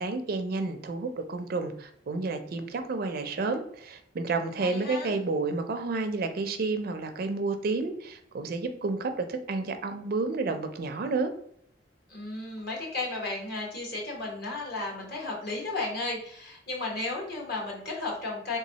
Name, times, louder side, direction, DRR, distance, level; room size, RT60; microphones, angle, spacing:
voice 1, 0.0-11.3, right 3 dB, 55° right, 7 dB, 0.4 m, -30 dB
voice 2, 4.6-5.1 12.1-18.6, left 2 dB, 60° left, -1 dB, 1.2 m, -34 dB
3.4 x 3.0 x 2.8 m, 0.67 s
head